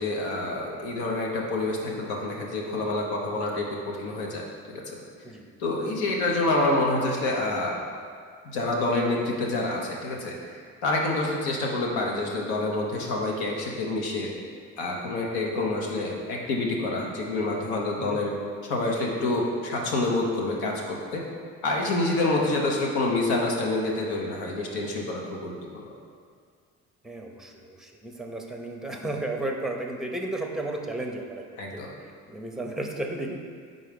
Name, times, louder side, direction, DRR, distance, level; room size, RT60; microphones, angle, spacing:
voice 1, 0.0-5.0 5.6-7.8 8.4-10.4 10.8-14.3 14.8-18.3 18.6-21.2 21.6-25.9 31.6-31.9, left 2 dB, 80° left, -1 dB, 1.1 m, -27 dB
voice 2, 27.0-31.4 31.7-33.5, right 2 dB, ahead, 2 dB, 0.7 m, -34 dB
4.6 x 4.0 x 5.2 m, 2.1 s
supercardioid pair, 70°, 38 cm